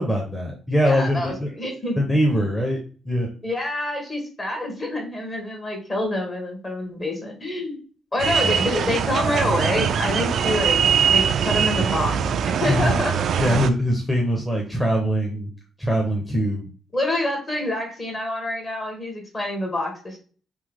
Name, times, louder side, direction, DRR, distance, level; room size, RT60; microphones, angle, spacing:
voice 1, 0.0-1.5 2.0-2.8 3.0-3.3 8.4-8.6 12.6-13.0 13.4-15.5 15.8-16.7, equal, 5° left, -1 dB, 1.0 m, -22 dB
voice 2, 0.8-2.0 3.4-7.8 8.1-10.8 11.1-13.2 16.9-20.2, left 1 dB, 30° left, 2 dB, 1.6 m, -27 dB
sound 1, 8.2-13.7, right 7 dB, 65° right, 0.4 m, -22 dB
3.5 x 2.9 x 3.5 m, 0.40 s
cardioid pair, 90°, 0 cm